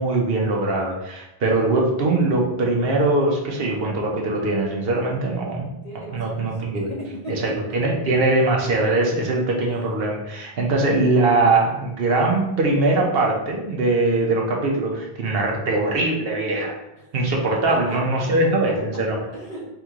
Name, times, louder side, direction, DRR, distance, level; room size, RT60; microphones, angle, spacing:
voice 1, 0.0-5.7 6.1-6.9 7.3-16.8 17.1-19.2, right 2 dB, 70° right, 0 dB, 1.0 m, -21 dB
voice 2, 5.4-6.5 6.7-7.8 9.6-9.8 17.7-18.3 19.3-19.7, right 1 dB, 40° left, -5 dB, 1.2 m, -36 dB
3.6 x 3.1 x 3.5 m, 0.88 s
omnidirectional pair, 1.0 m